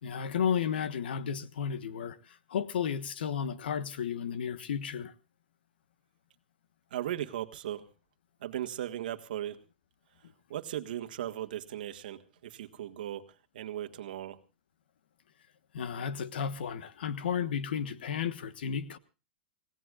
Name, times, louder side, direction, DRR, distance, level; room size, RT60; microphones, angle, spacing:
voice 1, 0.0-5.1 15.7-19.0, left 7 dB, 80° left, 1.3 m, -33 dB
voice 2, 6.9-7.9 8.4-9.6 10.5-13.2 13.5-14.4, right 12 dB, 60° right, 1.6 m, -37 dB
29.0 x 17.0 x 2.4 m
supercardioid pair, 175°, 5 cm